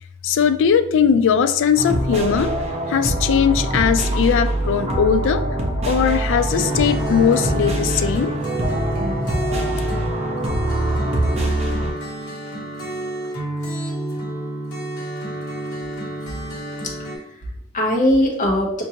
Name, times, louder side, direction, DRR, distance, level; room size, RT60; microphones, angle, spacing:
voice 1, 0.2-2.5 2.9-5.4 5.9-8.3, left 7 dB, 60° left, 11 dB, 0.3 m, -19 dB
sound 1, 1.8-11.9, right 1 dB, 30° right, 0.6 m, -23 dB
sound 2, 6.5-17.2, right 1 dB, 80° left, 1.2 m, -29 dB
voice 2, 16.8-18.8, left 1 dB, 35° left, 0 dB, 0.8 m, -21 dB
5.2 x 2.5 x 2.8 m, 0.74 s
head